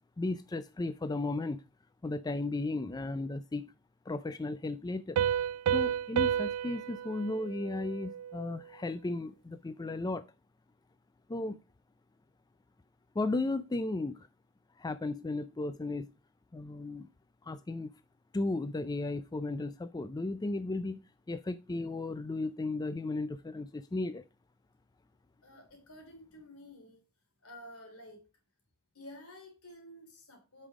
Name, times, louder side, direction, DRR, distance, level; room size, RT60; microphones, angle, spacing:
voice 1, 0.2-1.6 2.0-3.7 4.1-5.2 5.7-10.2 11.3-11.6 13.1-14.3 14.8-16.1 16.5-17.1 17.4-17.9 18.3-21.0 21.3-24.2, left 2 dB, 20° left, 0.4 m, -35 dB
Piano, 5.2-8.6, right 9 dB, 80° right, 0.3 m, -31 dB
voice 2, 25.4-27.0 27.4-28.2 28.9-30.7, left 1 dB, 80° left, 3.4 m, -51 dB
8.7 x 5.4 x 4.8 m
head